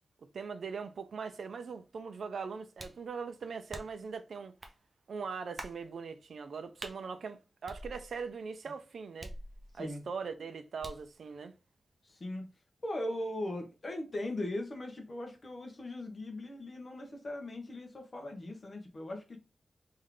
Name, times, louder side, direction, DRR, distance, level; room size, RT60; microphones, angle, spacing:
voice 1, 0.3-4.5 5.1-9.3 9.7-11.5, right 5 dB, 70° right, 0.5 m, -41 dB
sound 1, 2.8-3.1 3.7-4.1 4.6-4.8 5.6-5.8 6.8-7.0 7.7-8.3 9.2-9.9 10.8-11.1, right 1 dB, 20° right, 0.6 m, -46 dB
voice 2, 12.0-12.5 12.8-19.4, left 1 dB, 35° left, 1.1 m, -39 dB
3.5 x 3.2 x 3.8 m
wide cardioid pair, 175°, 0 cm